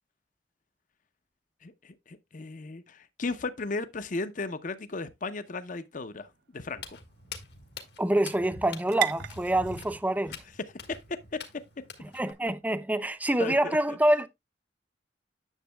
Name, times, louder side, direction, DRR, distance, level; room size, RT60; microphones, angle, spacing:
voice 1, 1.6-7.0 10.3-10.4 10.9-11.6 13.4-14.0, left 3 dB, 45° left, 0.7 m, -36 dB
sound 1, 5.5-13.2, right 10 dB, 65° right, 0.6 m, -42 dB
Walk footsteps, 6.7-12.3, left 5 dB, 65° left, 1.6 m, -45 dB
voice 2, 8.0-10.4 12.1-14.3, right 1 dB, 10° right, 0.5 m, -26 dB
9.9 x 7.1 x 2.2 m
head